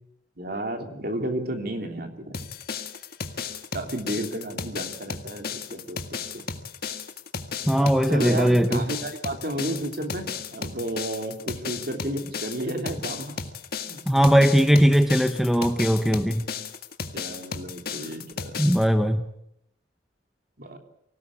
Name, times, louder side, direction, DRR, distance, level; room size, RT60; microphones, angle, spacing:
voice 1, 0.4-2.4 3.7-6.4 8.1-13.5 13.9-14.0 17.1-18.5 20.6-20.8, right 1 dB, 50° right, 5 dB, 3.1 m, -32 dB
sound 1, 2.3-18.8, left 5 dB, 50° left, 1.8 m, -34 dB
voice 2, 7.7-8.9 14.1-16.5 18.6-19.3, equal, ahead, 8 dB, 0.9 m, -19 dB
24.5 x 17.5 x 8.5 m, 0.78 s
head